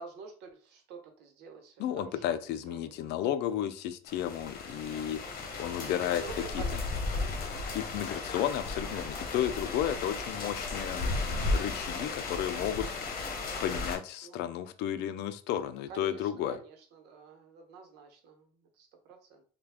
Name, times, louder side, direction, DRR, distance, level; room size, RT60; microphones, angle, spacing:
voice 1, 0.0-2.4 2.7-3.0 5.2-7.4 10.0-10.4 14.2-14.4 15.9-18.5 18.8-19.4, right 5 dB, 80° right, 4 dB, 0.9 m, -48 dB
voice 2, 1.8-5.2 5.6-6.2 6.5-6.6 7.7-12.9 13.6-16.6, left 11 dB, 80° left, 11 dB, 0.4 m, -33 dB
sound 1, 4.1-14.0, left 3 dB, 60° left, 0.9 m, -35 dB
3.2 x 2.2 x 3.4 m, 0.42 s
cardioid pair, 110°, 17 cm